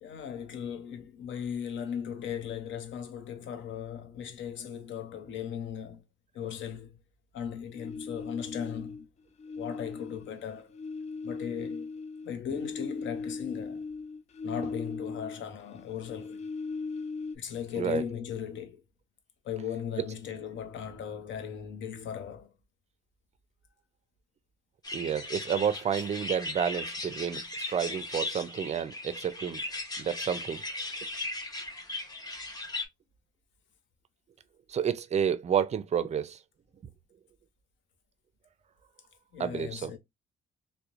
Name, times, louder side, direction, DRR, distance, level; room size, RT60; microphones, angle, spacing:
voice 1, 0.0-6.0 6.3-7.0 7.3-9.1 9.6-10.8 11.2-11.9 12.2-13.9 14.4-16.4 17.3-18.8 19.4-22.5 39.3-40.0, left 8 dB, 70° left, 0.7 m, -37 dB
sound 1, 7.7-9.1 9.4-15.5 15.8-17.4, left 4 dB, 35° left, 0.4 m, -38 dB
sound 2, 24.8-32.8, left 2 dB, 20° left, 0.7 m, -37 dB
voice 2, 24.9-29.6 30.0-30.6 34.7-36.4 39.4-39.9, right 8 dB, 35° right, 0.4 m, -30 dB
2.9 x 2.0 x 2.4 m
cardioid pair, 90°, 20 cm